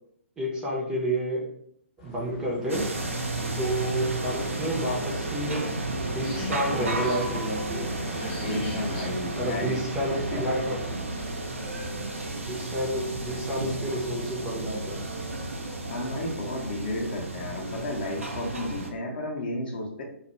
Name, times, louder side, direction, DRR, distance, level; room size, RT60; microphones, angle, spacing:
voice 1, 0.4-1.4 2.0-2.9 3.4-5.7 6.1-8.0 9.4-10.8 12.5-15.1, equal, 10° right, -4 dB, 0.5 m, -30 dB
sound 1, 2.0-9.1, left 1 dB, 30° left, 1.0 m, -41 dB
sound 2, 2.7-18.9, right 2 dB, 70° right, 0.5 m, -32 dB
voice 2, 8.4-9.8 10.1-10.4 15.9-20.0, left 1 dB, 45° left, -1 dB, 0.6 m, -33 dB
2.2 x 2.0 x 2.9 m, 0.70 s
figure-of-eight pair, 125°, 7 cm